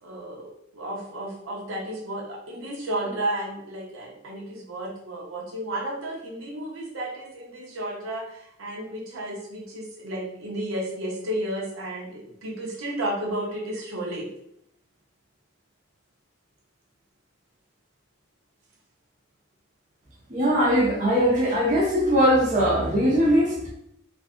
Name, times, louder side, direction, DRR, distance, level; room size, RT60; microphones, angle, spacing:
voice 1, 0.0-14.3, right 1 dB, 85° right, -3 dB, 0.8 m, -32 dB
voice 2, 20.3-23.7, equal, 35° right, -4 dB, 0.5 m, -21 dB
2.6 x 2.4 x 2.4 m, 0.74 s
head